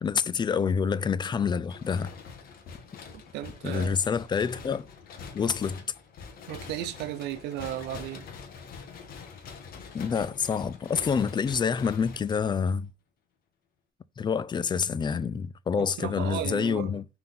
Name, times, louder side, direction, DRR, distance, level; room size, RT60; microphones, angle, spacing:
voice 1, 0.0-2.1 3.6-4.9 5.3-5.8 9.9-12.9 14.2-17.1, left 6 dB, 25° left, 0.4 m, -27 dB
sound 1, 1.7-12.9, left 6 dB, 60° left, 1.5 m, -45 dB
voice 2, 3.3-4.0 6.5-8.3 15.8-17.0, right 12 dB, 90° right, 0.7 m, -35 dB
5.7 x 3.9 x 4.2 m
cardioid pair, 110°, 17 cm